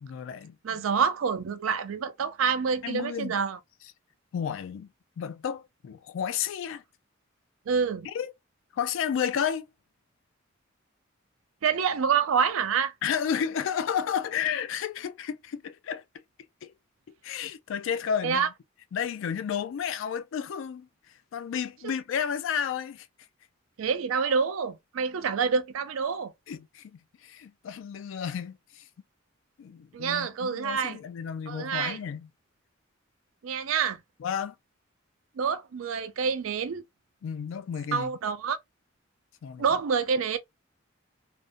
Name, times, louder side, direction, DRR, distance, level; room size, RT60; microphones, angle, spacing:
voice 1, 0.0-0.8 2.8-3.4 4.3-4.9 5.2-6.8 8.0-8.3 8.7-9.7 13.0-16.0 16.6-16.7 17.2-18.5 18.9-20.9 21.3-23.1 26.5-28.8 29.6-32.3 34.2-34.5 37.2-38.1 39.4-39.8, left 8 dB, 65° left, 0.3 m, -32 dB
voice 2, 0.6-3.6 7.7-8.1 11.6-12.9 18.2-18.5 23.8-26.3 29.9-31.0 31.5-32.0 33.4-34.0 35.4-36.8 37.9-38.6 39.6-40.4, right 6 dB, 90° right, 0.4 m, -27 dB
2.5 x 2.1 x 2.4 m
head